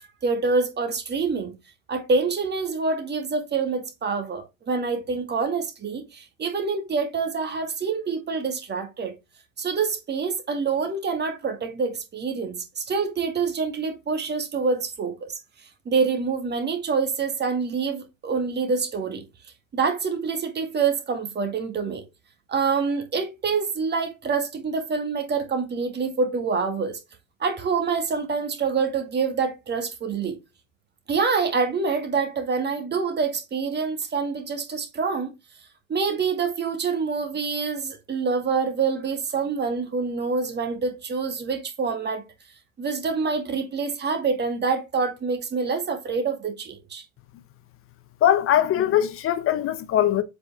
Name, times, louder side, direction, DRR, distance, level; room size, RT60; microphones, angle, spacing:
voice 1, 0.2-1.5 1.9-9.1 9.6-15.4 15.9-19.2 19.7-22.0 22.5-27.0 27.4-30.4 31.1-35.3 35.9-42.2 42.8-47.0, right 5 dB, 25° right, 2.3 m, -26 dB
voice 2, 48.2-50.2, left 11 dB, 35° left, 0.9 m, -21 dB
7.8 x 4.8 x 3.7 m
figure-of-eight pair, 80°, 41 cm